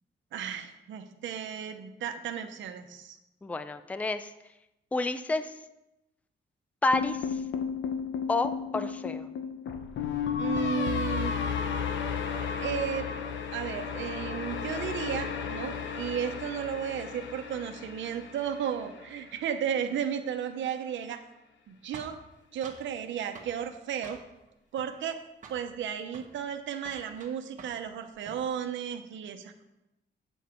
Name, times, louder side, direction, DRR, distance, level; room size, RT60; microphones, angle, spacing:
voice 1, 0.3-3.2 10.4-11.3 12.6-13.1 13.5-21.2 21.7-22.2 22.5-24.2 24.7-25.2 25.5-29.6, right 8 dB, 90° right, 6 dB, 0.9 m, -34 dB
voice 2, 3.4-4.3 4.9-5.6 6.8-7.4 8.3-9.3, left 2 dB, 10° left, 11 dB, 0.4 m, -30 dB
sound 1, 6.9-19.1, left 7 dB, 80° left, 0.9 m, -33 dB
sound 2, 21.9-22.9 23.3-23.6 24.0-24.5 24.8-25.2 25.4-25.7 26.1-26.3 26.8-27.9 28.1-28.5, right 4 dB, 45° right, 1.2 m, -48 dB
9.0 x 7.3 x 4.5 m, 0.90 s
wide cardioid pair, 165°, 19 cm